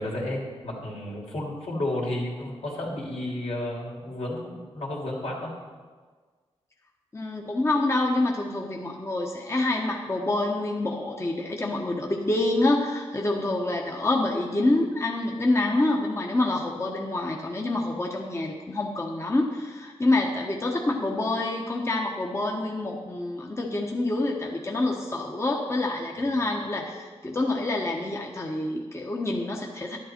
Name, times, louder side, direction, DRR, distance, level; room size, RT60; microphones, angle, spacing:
voice 1, 0.0-5.5, left 1 dB, 80° left, -3 dB, 3.0 m, -32 dB
voice 2, 7.1-30.0, left 2 dB, 25° left, 0 dB, 1.1 m, -27 dB
12.0 x 11.0 x 4.4 m, 1.5 s
wide cardioid pair, 105°, 11 cm